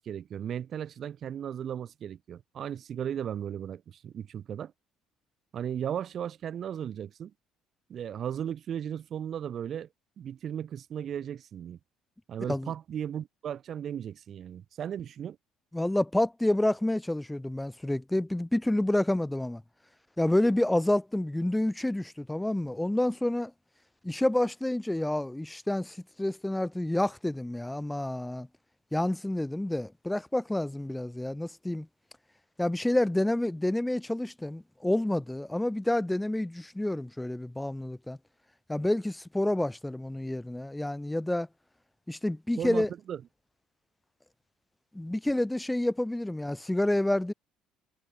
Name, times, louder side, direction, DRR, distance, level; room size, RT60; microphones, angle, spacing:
voice 1, 0.0-4.7 5.5-7.3 7.9-9.9 10.2-11.8 12.3-15.4 42.6-43.2, right 9 dB, 50° right, 1.1 m, -36 dB
voice 2, 15.7-19.6 20.2-23.5 24.0-28.5 28.9-31.9 32.6-38.2 38.7-41.5 42.1-42.9 44.9-47.3, left 1 dB, 5° left, 0.4 m, -29 dB
supercardioid pair, 90°, 0 cm